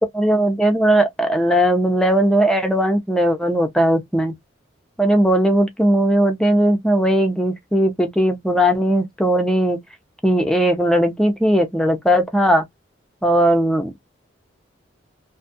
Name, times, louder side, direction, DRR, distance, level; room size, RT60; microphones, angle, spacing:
voice 1, 0.1-4.3 5.0-9.8 10.2-12.6 13.2-13.9, equal, 5° left, 0.4 m, -18 dB
2.6 x 2.3 x 2.5 m
head